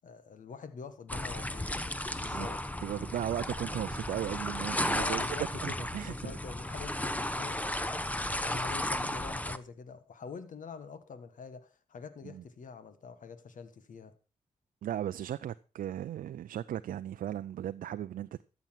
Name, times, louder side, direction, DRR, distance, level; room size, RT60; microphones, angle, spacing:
voice 1, 0.0-2.6 4.9-8.1 8.4-14.1, left 5 dB, 65° left, 1.6 m, -45 dB
sound 1, 1.1-9.6, left 1 dB, 10° left, 0.9 m, -34 dB
voice 2, 2.3-5.2 5.6-6.3 12.2-12.4 14.8-18.4, right 11 dB, 75° right, 0.5 m, -36 dB
13.5 x 7.1 x 5.9 m
cardioid pair, 55°, 14 cm